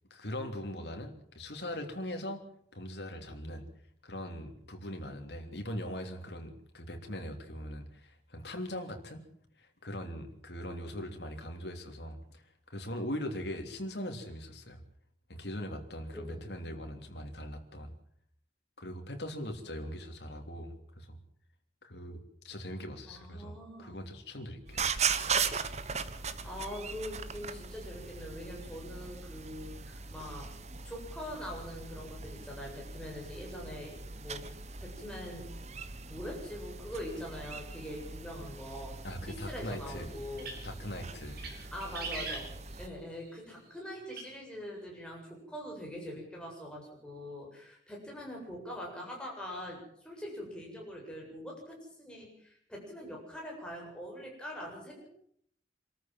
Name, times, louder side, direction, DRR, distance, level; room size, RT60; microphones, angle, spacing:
voice 1, 0.1-2.4 2.7-3.7 4.0-9.2 9.6-12.4 12.7-14.8 15.3-17.9 18.8-21.2 21.8-22.2 22.4-24.9 39.0-40.1 40.6-41.4, left 1 dB, 65° left, 4 dB, 3.3 m, -41 dB
voice 2, 16.1-16.6 23.1-24.0 26.4-30.5 30.8-34.5 34.8-35.5 36.1-39.0 39.3-40.5 41.5-42.4 42.8-55.1, equal, 5° left, -2 dB, 7.9 m, -43 dB
sound 1, 24.7-42.9, right 5 dB, 40° right, 1.3 m, -39 dB
sound 2, 40.2-40.8 41.2-41.6 41.8-42.9 44.1-44.2, right 4 dB, 55° right, 6.9 m, -40 dB
26.5 x 14.0 x 7.7 m, 0.66 s
head